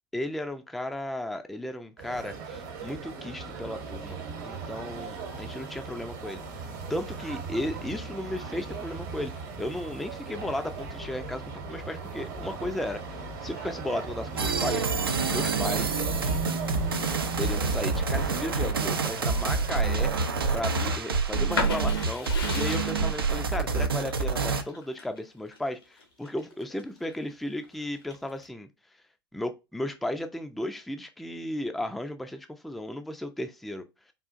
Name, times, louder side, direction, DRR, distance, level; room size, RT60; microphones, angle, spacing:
voice 1, 0.1-6.6 6.9-14.9 15.3-16.0 17.4-20.1 20.5-28.7 29.3-34.1, left 1 dB, ahead, 0.3 m, -35 dB
sound 1, 2.0-21.0, right 4 dB, 55° right, 1.0 m, -37 dB
sound 2, 14.4-24.6, right 4 dB, 80° right, 0.5 m, -27 dB
sound 3, 21.5-27.1 27.6-28.4, left 4 dB, 85° left, 1.1 m, -35 dB
3.8 x 2.4 x 2.5 m
figure-of-eight pair, 95°, 12 cm